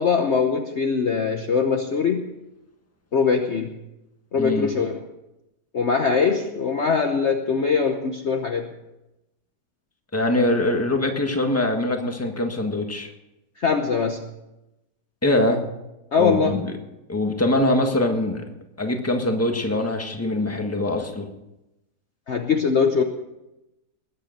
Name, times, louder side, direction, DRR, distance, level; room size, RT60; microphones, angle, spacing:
voice 1, 0.0-2.2 3.1-3.7 4.3-5.1 5.7-8.7 13.6-14.2 16.1-16.7 22.3-23.0, left 5 dB, 50° left, 5 dB, 1.1 m, -22 dB
voice 2, 4.4-4.7 10.1-13.1 15.2-15.6 16.2-16.7 17.1-18.4 18.8-21.3, left 1 dB, 10° left, 3 dB, 1.5 m, -23 dB
20.0 x 8.4 x 6.6 m, 0.95 s
omnidirectional pair, 1.8 m